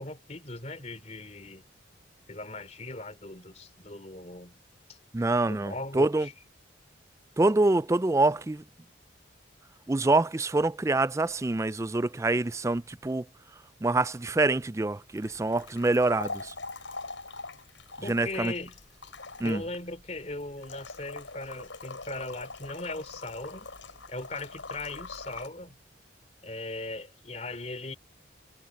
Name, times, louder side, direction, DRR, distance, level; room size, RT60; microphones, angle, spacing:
voice 1, 0.0-1.6 2.3-4.6 4.9-5.0 5.4-6.3 18.0-18.8 19.4-23.7 24.1-25.8 26.4-28.0, left 2 dB, 35° left, 3.1 m, -39 dB
voice 2, 5.1-6.3 7.4-8.6 9.9-13.2 13.8-16.5 18.1-18.5 19.4-19.6, right 2 dB, 15° right, 0.4 m, -26 dB
sound 1, 15.2-25.5, left 3 dB, 90° left, 7.5 m, -43 dB
head